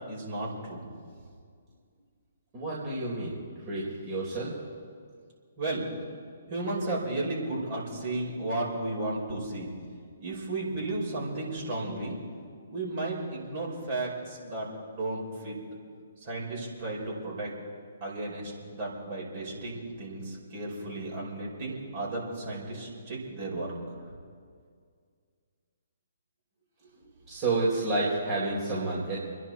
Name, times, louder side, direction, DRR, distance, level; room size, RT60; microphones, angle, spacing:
voice 1, 0.1-0.8 5.6-5.9 6.5-9.7 10.2-12.2 12.7-15.6 16.2-17.5 18.0-23.7, right 2 dB, 40° right, -4 dB, 5.4 m, -34 dB
voice 2, 2.5-3.4 3.7-4.5 27.3-29.2, right 2 dB, 25° right, -6 dB, 4.1 m, -29 dB
28.0 x 10.5 x 4.4 m, 2.1 s
figure-of-eight pair, 130°, 0 cm